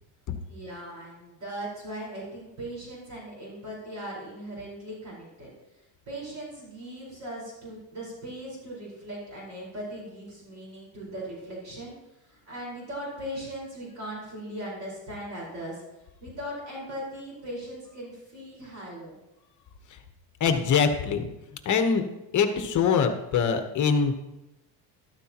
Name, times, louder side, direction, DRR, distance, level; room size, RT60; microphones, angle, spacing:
voice 1, 0.5-5.5 6.1-11.9 12.2-15.8 16.2-19.2, right 1 dB, 40° right, -4 dB, 4.8 m, -39 dB
voice 2, 20.4-21.3 21.6-22.0 22.3-24.1, left 6 dB, 40° left, 7 dB, 1.1 m, -23 dB
13.5 x 13.0 x 3.0 m, 0.95 s
cardioid pair, 155°, 44 cm